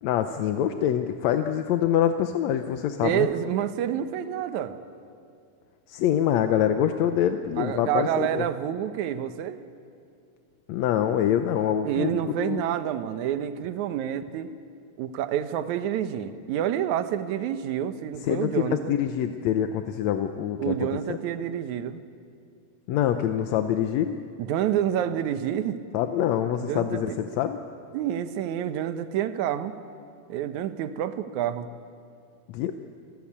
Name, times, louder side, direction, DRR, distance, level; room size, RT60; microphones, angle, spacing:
voice 1, 0.0-3.3 5.9-8.5 10.7-12.1 12.4-12.6 18.2-21.2 22.9-24.2 25.9-27.6 32.5-32.7, left 10 dB, 70° left, 7 dB, 1.8 m, -25 dB
voice 2, 3.0-4.8 7.6-9.6 11.9-14.5 15.0-18.9 20.6-22.0 24.4-25.8 26.6-27.2 27.9-29.8 30.3-31.7, right 10 dB, 70° right, 10 dB, 2.3 m, -28 dB
28.5 x 16.5 x 8.6 m, 2.4 s
omnidirectional pair, 3.7 m